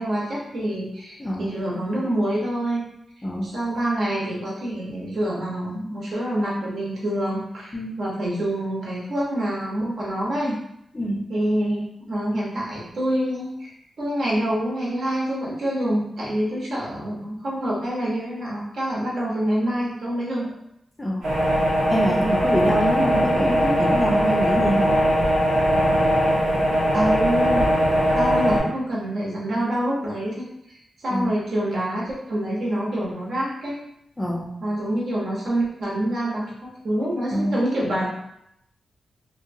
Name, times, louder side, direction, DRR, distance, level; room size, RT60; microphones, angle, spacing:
voice 1, 0.0-2.8 3.4-10.6 11.3-20.5 26.9-27.6 28.1-30.4 30.7-33.8 34.6-38.1, right 1 dB, 60° right, -5 dB, 0.9 m, -26 dB
voice 2, 1.2-1.5 3.2-3.5 7.7-7.9 10.9-11.2 21.0-21.3 21.9-24.9 31.1-31.3 34.2-34.5 37.3-37.6, equal, 15° left, -2 dB, 0.4 m, -25 dB
sound 1, 21.2-28.6, equal, 90° right, 0.9 m, -20 dB
2.7 x 2.2 x 2.6 m, 0.78 s
wide cardioid pair, 160°, 0 cm